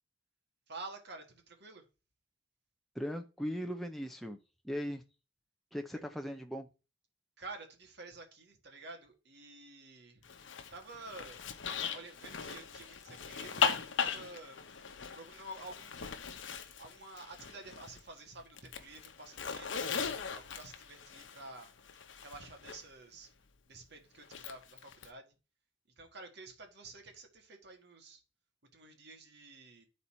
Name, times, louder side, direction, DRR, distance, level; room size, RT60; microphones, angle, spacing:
voice 1, 0.7-1.8 7.4-10.2 10.7-11.4 11.9-14.6 15.1-16.2 16.8-19.7 20.3-21.7 22.2-23.3 23.7-25.3 26.0-28.2 28.7-29.9, right 2 dB, 65° right, 5 dB, 1.7 m, -50 dB
voice 2, 2.9-4.4 4.6-5.0 5.7-6.7, equal, ahead, 4 dB, 0.5 m, -38 dB
Zipper (clothing), 10.2-18.1 18.4-22.8 24.2-25.1, left 6 dB, 85° left, 0.8 m, -39 dB
11.5 x 4.2 x 4.3 m, 0.32 s
head